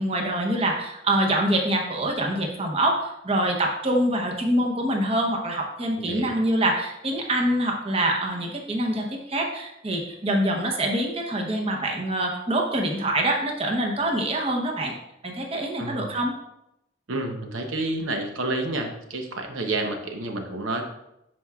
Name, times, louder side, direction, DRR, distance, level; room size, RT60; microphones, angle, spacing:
voice 1, 0.0-15.0 15.2-16.3, right 1 dB, 30° right, 1 dB, 0.9 m, -25 dB
voice 2, 6.0-6.3 15.8-16.1 17.1-20.8, right 2 dB, 85° right, 4 dB, 0.9 m, -29 dB
11.0 x 4.6 x 2.4 m, 0.84 s
head